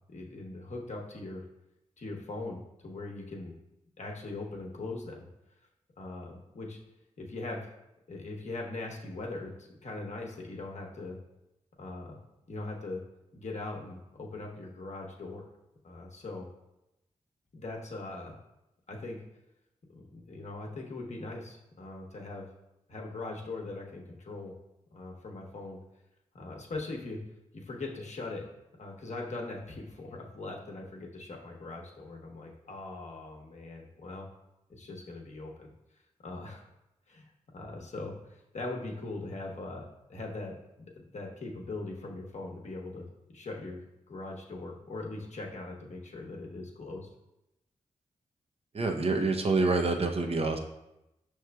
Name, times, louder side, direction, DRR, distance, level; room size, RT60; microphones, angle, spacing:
voice 1, 0.1-1.4 2.0-3.5 4.0-5.3 6.0-6.8 7.2-7.7 8.1-11.2 11.8-12.2 12.5-13.0 13.3-15.4 15.8-16.5 17.5-18.3 18.9-19.2 19.9-22.4 22.9-24.5 24.9-25.8 26.3-27.2 27.5-28.4 28.8-34.3 34.7-35.7 36.2-36.6 37.1-37.3 37.5-47.1, left 2 dB, 60° left, 0 dB, 0.9 m, -40 dB
voice 2, 48.7-50.6, right 3 dB, 45° right, 4 dB, 0.6 m, -27 dB
5.7 x 3.1 x 2.2 m, 0.90 s
supercardioid pair, 40°, 14 cm